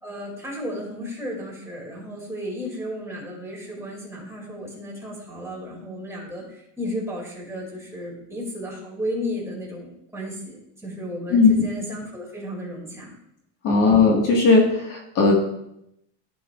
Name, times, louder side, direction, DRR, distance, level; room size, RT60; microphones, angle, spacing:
voice 1, 0.0-13.1 13.9-14.0, equal, 5° right, -4 dB, 2.5 m, -34 dB
voice 2, 13.6-15.3, left 4 dB, 40° left, -1 dB, 1.7 m, -17 dB
14.5 x 6.0 x 2.4 m, 0.78 s
supercardioid pair, 150°, 49 cm